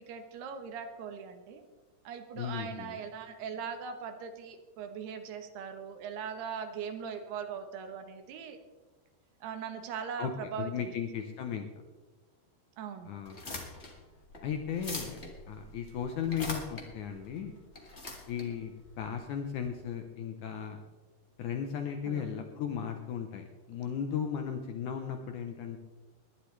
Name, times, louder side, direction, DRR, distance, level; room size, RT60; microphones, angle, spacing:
voice 1, 0.0-1.6 2.0-8.6 9.4-10.9 12.8-13.1 22.1-22.3, right 7 dB, 80° right, 7 dB, 3.1 m, -40 dB
voice 2, 2.4-3.0 10.2-10.3 10.6-11.7 13.1-13.6 14.4-15.2 15.5-17.5 18.3-20.8 21.4-25.8, left 8 dB, 85° left, 5 dB, 1.7 m, -36 dB
sound 1, 13.2-19.7, left 2 dB, 45° left, 0.8 m, -43 dB
20.5 x 11.5 x 3.3 m, 1.2 s
omnidirectional pair, 4.7 m